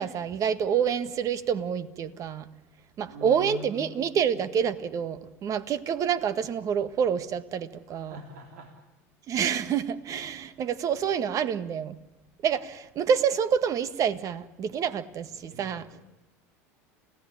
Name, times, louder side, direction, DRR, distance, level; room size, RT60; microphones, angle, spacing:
voice 1, 0.0-2.5 3.0-8.2 9.3-12.0 12.4-15.8, right 7 dB, 45° right, 1.7 m, -27 dB
voice 2, 3.0-4.0 4.3-4.4 7.9-8.7 15.3-16.0, equal, 85° right, 3.4 m, -44 dB
29.0 x 17.0 x 10.0 m
hypercardioid pair, 90°, 8 cm